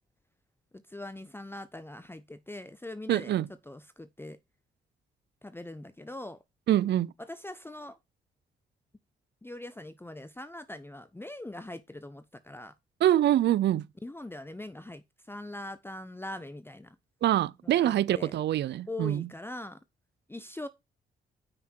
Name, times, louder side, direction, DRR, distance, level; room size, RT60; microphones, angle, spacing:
voice 1, 0.7-3.4 3.7-4.4 5.4-6.4 7.2-8.0 9.4-12.7 14.0-17.0 17.6-18.4 18.9-19.8 20.3-20.7, left 1 dB, 10° left, 0.7 m, -42 dB
voice 2, 3.1-3.5 6.7-7.1 13.0-13.8 17.2-19.3, right 12 dB, 55° right, 0.5 m, -25 dB
8.8 x 5.7 x 4.5 m
hypercardioid pair, 45°, 21 cm